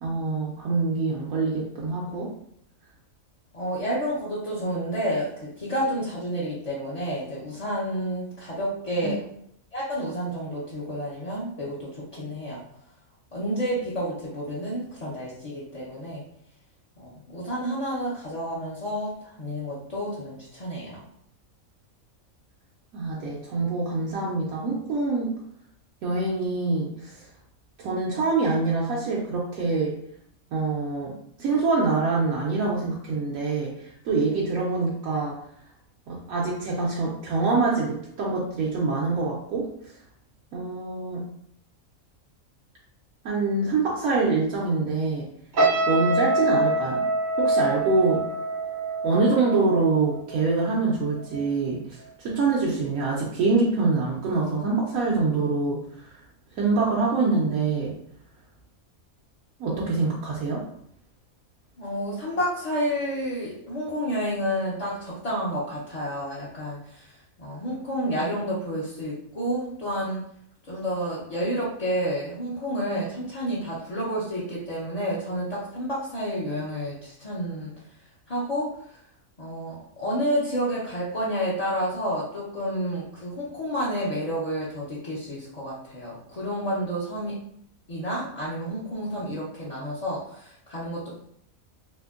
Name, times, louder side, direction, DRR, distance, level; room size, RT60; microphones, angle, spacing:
voice 1, 0.0-2.3 22.9-25.3 26.0-27.2 27.8-29.9 30.5-31.1 31.4-33.7 34.0-35.4 36.1-39.7 40.5-41.2 43.2-45.3 45.9-47.0 47.4-48.2 49.0-51.8 52.2-55.8 56.6-57.9 59.6-60.6, right 3 dB, 85° right, -4 dB, 1.0 m, -25 dB
voice 2, 3.5-5.3 5.6-9.2 9.7-12.6 13.3-16.2 17.0-19.1 19.4-21.0 61.8-67.0 67.4-70.2 70.7-77.7 78.3-78.7 79.4-87.4 87.9-91.1, equal, 50° left, -8 dB, 0.4 m, -30 dB
sound 1, 45.5-50.8 51.2-51.5, right 2 dB, 60° right, 0.5 m, -25 dB
2.8 x 2.5 x 2.4 m, 0.69 s
omnidirectional pair, 1.4 m